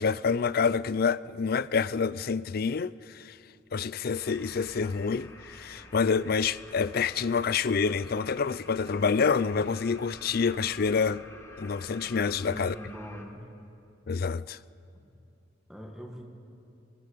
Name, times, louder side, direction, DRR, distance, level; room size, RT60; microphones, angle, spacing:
voice 1, 0.0-3.4 3.7-11.2 11.6-12.8 14.1-14.6, left 5 dB, 50° left, 0.5 m, -27 dB
sound 1, 4.1-13.3, left 2 dB, 15° left, 2.1 m, -49 dB
voice 2, 12.4-13.5 14.9-15.1 15.7-16.3, equal, ahead, 1.9 m, -43 dB
29.0 x 19.5 x 6.8 m
head